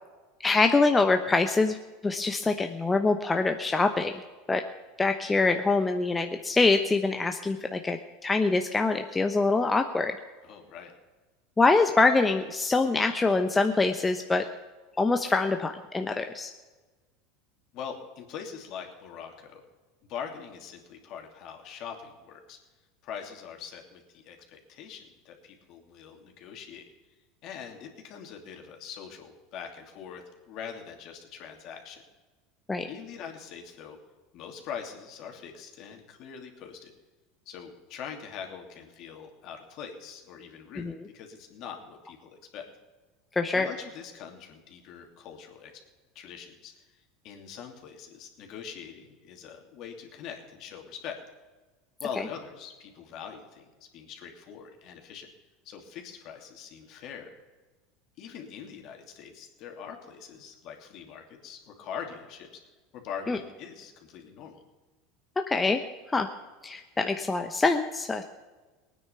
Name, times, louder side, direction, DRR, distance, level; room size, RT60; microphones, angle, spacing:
voice 1, 0.4-1.8 2.0-4.2 4.5-4.6 5.0-10.2 11.6-14.4 15.0-16.5 32.7-32.9 40.8-40.9 43.4-43.7 63.3-63.4 65.5-65.8 66.1-66.3 66.6-68.2, left 3 dB, 15° left, 6 dB, 0.9 m, -24 dB
voice 2, 10.4-10.9 17.7-19.6 20.0-22.6 23.0-26.9 27.4-32.0 32.9-34.0 34.3-36.9 37.5-42.7 43.5-45.7 46.1-51.2 52.0-55.3 55.6-57.4 58.2-62.6 62.9-64.6, left 7 dB, 55° left, 3 dB, 2.7 m, -43 dB
19.0 x 9.5 x 5.8 m, 1.3 s
hypercardioid pair, 90°, 0 cm